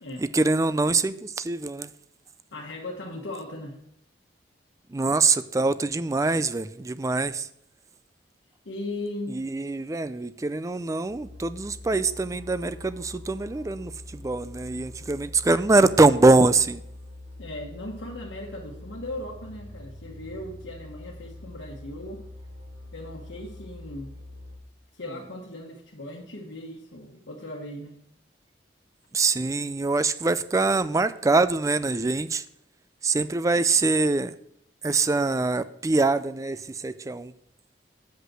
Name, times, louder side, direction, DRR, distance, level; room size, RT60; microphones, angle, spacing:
voice 1, 0.2-1.9 4.9-7.5 9.3-16.8 29.1-32.4 33.0-34.3 34.8-37.3, right 3 dB, 20° right, 14 dB, 0.3 m, -23 dB
voice 2, 2.5-3.8 8.6-9.7 17.4-22.2 22.9-24.1 24.9-28.0, left 1 dB, 85° left, -2 dB, 1.3 m, -38 dB
sound 1, 11.1-24.6, left 1 dB, 65° right, 2.4 m, -44 dB
8.1 x 5.3 x 6.1 m, 0.72 s
head